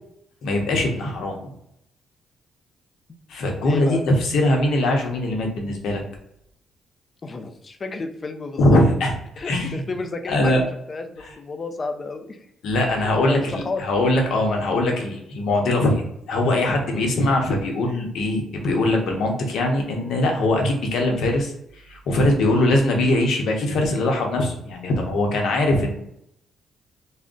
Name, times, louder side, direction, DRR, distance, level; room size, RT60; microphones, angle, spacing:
voice 1, 0.4-1.5 3.3-6.0 8.6-9.1 9.5-9.8 10.3-10.6 12.6-26.0, left 1 dB, 70° left, 1 dB, 0.8 m, -21 dB
voice 2, 3.7-4.0 7.2-8.8 9.4-12.5 12.8-13.9, left 3 dB, 35° left, 7 dB, 0.4 m, -32 dB
2.4 x 2.1 x 3.6 m, 0.76 s
cardioid pair, 90°, 0 cm